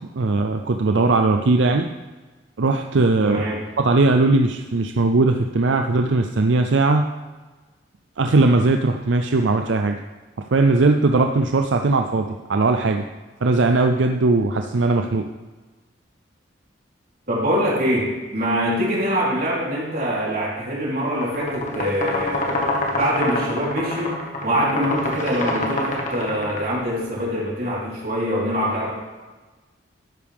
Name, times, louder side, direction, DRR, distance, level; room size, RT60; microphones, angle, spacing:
voice 1, 0.1-1.9 2.6-3.4 3.8-7.0 8.2-10.0 10.5-13.0 13.4-15.2, right 3 dB, 80° right, 5 dB, 0.6 m, -19 dB
voice 2, 3.2-3.6 17.3-24.2 24.4-28.9, equal, 50° right, -6 dB, 4.0 m, -24 dB
sound 1, 21.0-26.8, left 2 dB, 40° left, 1.7 m, -26 dB
12.5 x 9.6 x 3.6 m, 1.2 s
head